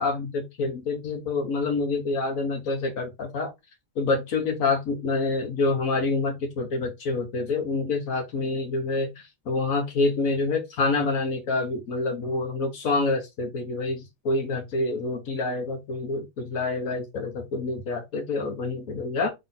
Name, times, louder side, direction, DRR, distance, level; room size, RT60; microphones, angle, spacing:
voice 1, 0.0-3.5 4.0-19.3, left 3 dB, 90° left, 1.5 m, -27 dB
3.9 x 3.2 x 3.8 m
omnidirectional pair, 1.4 m